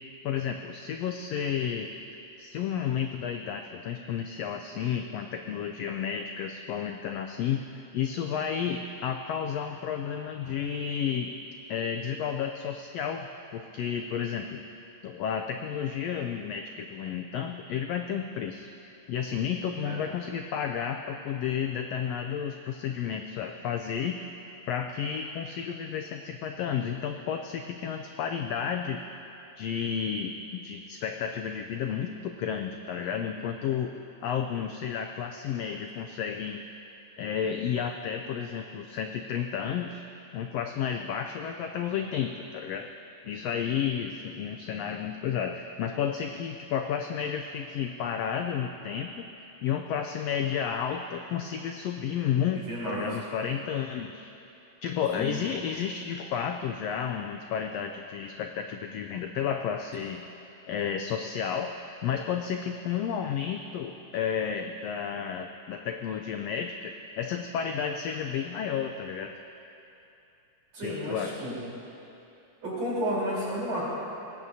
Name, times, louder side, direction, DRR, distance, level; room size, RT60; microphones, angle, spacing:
voice 1, 0.2-1.9 2.4-11.3 11.7-14.6 15.0-24.2 24.7-29.0 29.5-33.9 34.2-36.7 37.2-40.0 40.3-42.9 43.2-49.3 49.6-54.3 54.8-60.2 60.7-69.3 70.8-71.4, left 8 dB, 80° left, 4 dB, 1.5 m, -32 dB
voice 2, 52.7-53.2 55.2-55.4 70.7-71.5 72.6-73.8, equal, 55° right, -7 dB, 5.0 m, -32 dB
20.0 x 17.0 x 2.8 m, 2.8 s
omnidirectional pair, 3.4 m